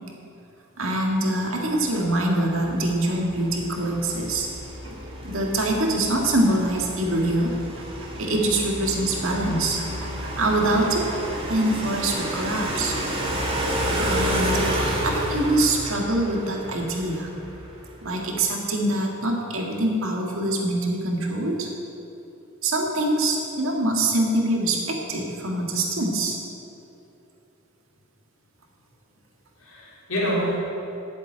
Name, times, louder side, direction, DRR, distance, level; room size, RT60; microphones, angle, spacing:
voice 1, 0.8-4.5 4.8-7.6 8.0-11.2 11.5-12.9 14.0-17.3 18.0-21.7 22.6-26.4, right 1 dB, 70° right, 0 dB, 1.8 m, -24 dB
sound 1, 1.9-18.0, equal, 25° right, 1.9 m, -30 dB
voice 2, 29.6-30.6, equal, 80° left, -5 dB, 2.9 m, -28 dB
8.1 x 7.5 x 8.7 m, 2.8 s
head